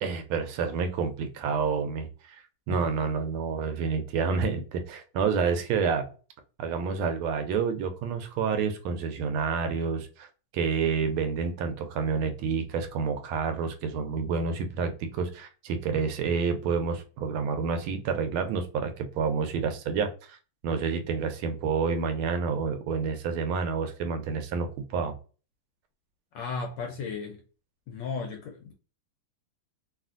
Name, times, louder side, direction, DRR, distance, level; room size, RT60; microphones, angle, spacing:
voice 1, 0.0-2.4 2.7-6.1 6.6-10.3 10.5-20.4 20.6-25.1, right 5 dB, 80° right, 1.4 m, -29 dB
voice 2, 26.3-27.4 27.9-28.7, left 5 dB, 75° left, 1.0 m, -35 dB
3.3 x 2.4 x 2.4 m
omnidirectional pair, 2.4 m